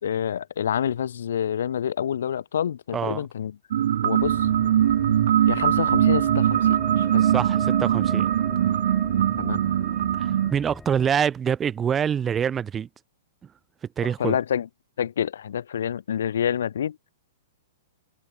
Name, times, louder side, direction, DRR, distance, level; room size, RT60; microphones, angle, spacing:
voice 1, 0.0-3.6 4.0-4.5 5.5-7.2 9.4-9.6 14.0-14.7 15.0-17.0, left 9 dB, 60° left, 3.5 m, -27 dB
voice 2, 2.9-3.2 7.2-8.3 10.2-12.9 14.0-14.4, right 8 dB, 20° right, 2.9 m, -25 dB
sound 1, 3.7-10.5, right 10 dB, 55° right, 0.5 m, -21 dB
sound 2, 4.2-11.0, left 4 dB, 10° left, 3.2 m, -41 dB
figure-of-eight pair, 105°, 0 cm